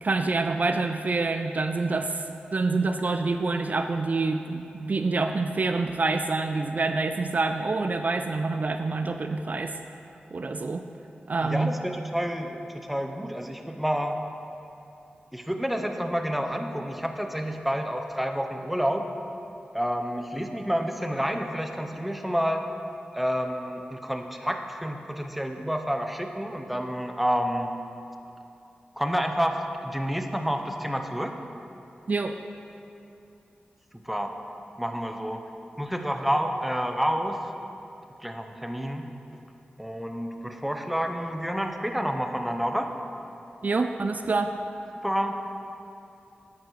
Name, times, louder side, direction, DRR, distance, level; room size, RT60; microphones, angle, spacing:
voice 1, 0.0-2.2 2.5-9.8 10.3-10.8 11.3-11.7 32.1-32.3 43.6-44.5, right 3 dB, 55° right, 6 dB, 0.5 m, -26 dB
voice 2, 11.4-14.2 15.3-19.0 19.7-22.7 23.1-27.7 29.0-31.3 33.9-34.4 34.8-35.4 35.8-37.4 38.2-39.1 39.8-42.9 44.9-45.3, equal, 5° right, 5 dB, 0.9 m, -29 dB
9.6 x 9.0 x 4.8 m, 2.8 s
cardioid pair, 50°, 3 cm